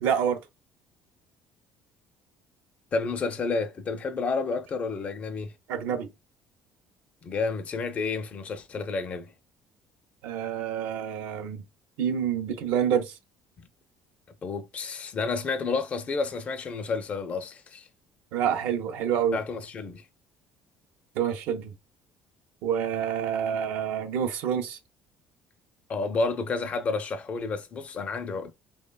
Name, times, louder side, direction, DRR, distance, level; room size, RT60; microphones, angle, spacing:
voice 1, 0.0-0.4 5.7-6.1 10.2-11.6 12.0-13.1 18.3-19.4 21.2-21.7 22.6-24.8, right 8 dB, 80° right, 0.5 m, -27 dB
voice 2, 2.9-5.5 7.2-9.3 13.6-13.7 14.4-17.9 19.3-20.0 25.9-28.5, left 4 dB, 35° left, 0.4 m, -30 dB
3.0 x 2.1 x 2.2 m
cardioid pair, 115°, 4 cm